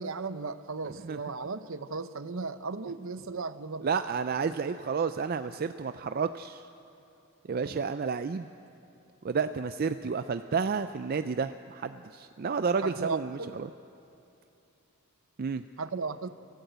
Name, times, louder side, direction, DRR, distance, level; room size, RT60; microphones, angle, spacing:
voice 1, 0.0-4.0 12.8-13.5 15.8-16.3, right 4 dB, 65° right, 12 dB, 0.7 m, -36 dB
voice 2, 3.8-6.6 7.5-8.5 9.2-13.7 15.4-15.6, right 5 dB, 45° right, 10 dB, 0.4 m, -31 dB
23.5 x 14.5 x 8.1 m, 2.7 s
head